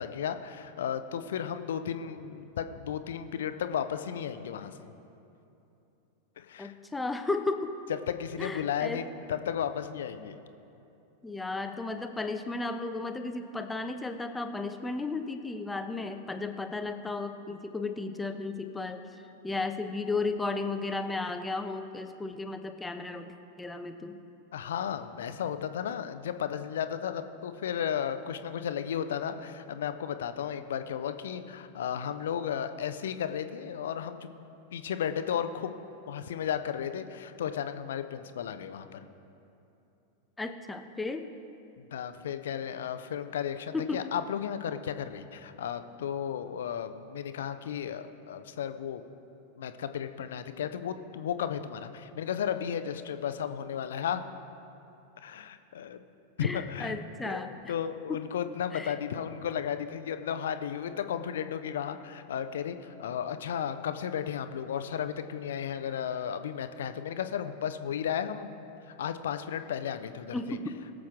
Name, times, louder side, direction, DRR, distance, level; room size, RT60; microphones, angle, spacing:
voice 1, 0.0-4.9 6.4-6.7 8.1-10.4 24.5-34.3 34.7-35.7 36.1-39.0 41.8-49.0 49.6-54.2 55.2-56.0 56.4-57.0 57.2-68.5 69.0-70.6, left 8 dB, 60° left, 10 dB, 0.7 m, -34 dB
voice 2, 6.6-7.8 8.4-9.1 11.2-19.0 19.4-24.2 40.4-41.3 43.7-44.0 56.4-57.7 58.1-58.2 58.7-59.0 70.3-70.7, left 3 dB, 10° left, 7 dB, 0.8 m, -34 dB
22.0 x 7.5 x 3.7 m, 2.9 s
figure-of-eight pair, 90°, 0 cm